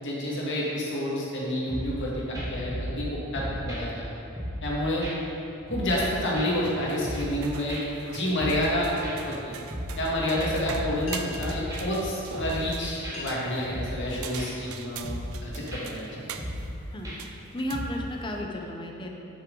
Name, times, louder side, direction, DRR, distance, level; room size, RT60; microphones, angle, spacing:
voice 1, 0.0-4.0 4.6-5.1 5.7-7.8 8.1-8.9 9.3-9.5 10.0-15.1 15.4-16.1, left 1 dB, 60° left, -5 dB, 1.9 m, -29 dB
sound 1, 1.7-2.1 2.3-3.1 3.4-4.7 5.0-5.1 5.5-6.1 6.4-7.4 7.7-7.8 8.2-8.7 9.0-10.1 10.4-12.0 12.4-12.7 13.0-13.2 13.5-14.1 14.4-14.7 15.0-15.4 15.7-15.8 16.2-16.7 17.0-17.4 17.7-17.9, equal, 15° right, 1.4 m, -35 dB
sound 2, 6.8-18.4, right 7 dB, 75° right, 0.5 m, -43 dB
sound 3, 11.0-11.6 12.5-12.6 13.0-13.6 14.1-14.4 15.0-15.3 15.8-17.1, left 4 dB, 75° left, 1.6 m, -43 dB
voice 2, 17.5-19.1, equal, 25° left, 1 dB, 0.8 m, -33 dB
9.4 x 6.3 x 3.8 m, 2.8 s
head